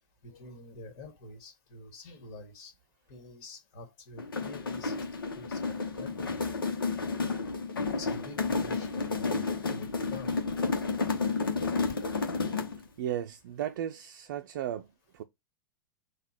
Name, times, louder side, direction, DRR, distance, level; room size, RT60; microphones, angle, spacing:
voice 1, 0.2-2.7 3.1-6.4 7.7-10.4, left 2 dB, 50° left, 2.2 m, -47 dB
sound 1, 4.2-12.9, left 4 dB, 80° left, 1.0 m, -31 dB
voice 2, 13.0-15.2, right 11 dB, 60° right, 0.5 m, -36 dB
4.0 x 2.4 x 4.4 m
figure-of-eight pair, 100°, 12 cm